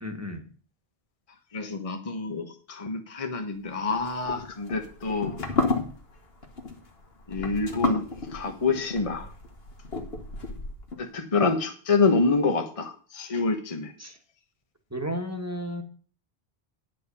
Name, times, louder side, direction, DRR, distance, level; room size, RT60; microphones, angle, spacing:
voice 1, 0.0-0.4 14.0-14.2 14.9-15.8, equal, 15° right, 3 dB, 1.5 m, -33 dB
voice 2, 1.5-5.3 7.3-8.0 8.3-9.3 11.0-13.9, left 4 dB, 35° left, 5 dB, 1.1 m, -27 dB
sound 1, 3.9-11.0, left 3 dB, 70° left, 1.8 m, -32 dB
10.0 x 5.3 x 6.9 m, 0.41 s
omnidirectional pair, 1.1 m